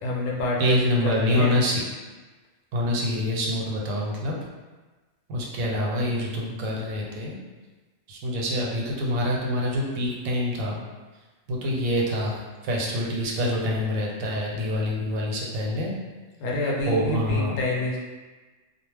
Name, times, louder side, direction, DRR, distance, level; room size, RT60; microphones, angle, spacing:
voice 1, 0.0-1.5 16.4-18.0, left 2 dB, 75° left, -3 dB, 0.9 m, -27 dB
voice 2, 0.6-1.8 2.7-4.4 5.3-7.4 8.1-10.8 11.5-12.3 12.6-16.0 16.9-17.5, equal, 90° right, -2 dB, 1.0 m, -26 dB
2.2 x 2.0 x 3.3 m, 1.3 s
omnidirectional pair, 1.4 m